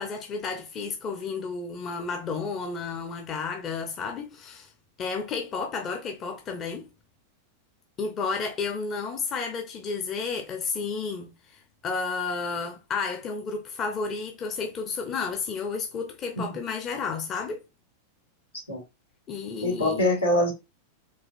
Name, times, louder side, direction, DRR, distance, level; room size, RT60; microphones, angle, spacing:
voice 1, 0.0-4.7 5.0-6.9 8.0-17.6 19.3-20.0, left 5 dB, 30° left, 0.7 m, -32 dB
voice 2, 19.6-20.5, left 1 dB, 85° left, 2.2 m, -24 dB
4.7 x 3.0 x 2.5 m
figure-of-eight pair, 90°, 0 cm